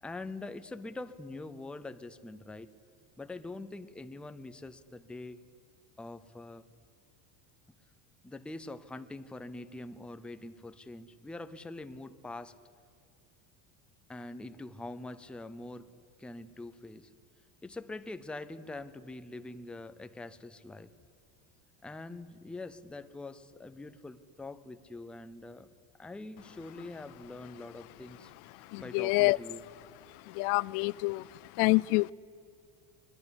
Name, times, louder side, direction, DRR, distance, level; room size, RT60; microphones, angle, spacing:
voice 1, 0.0-2.7 3.2-5.4 6.0-6.7 8.2-12.6 14.1-17.1 17.6-20.9 21.8-25.7 26.0-28.3 28.6-29.6, left 2 dB, ahead, 11 dB, 0.5 m, -44 dB
voice 2, 28.7-29.4 30.3-31.3 31.6-32.1, left 25 dB, 85° left, 24 dB, 0.6 m, -27 dB
22.0 x 21.5 x 9.8 m, 2.4 s
cardioid pair, 160°, 44 cm